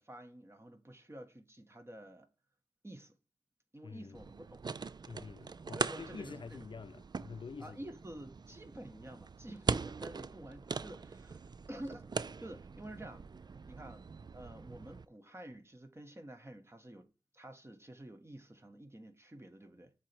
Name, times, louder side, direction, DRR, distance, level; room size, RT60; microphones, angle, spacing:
voice 1, 0.0-2.3 2.8-3.1 3.7-4.6 5.1-5.3 5.7-6.6 7.6-13.3 13.7-19.9, right 1 dB, 30° right, 1.2 m, -50 dB
voice 2, 3.8-4.2 5.1-7.8, left 5 dB, 60° left, 0.4 m, -47 dB
sound 1, 4.1-15.1, right 4 dB, 50° right, 0.4 m, -41 dB
7.4 x 3.0 x 5.1 m
wide cardioid pair, 60°, 9 cm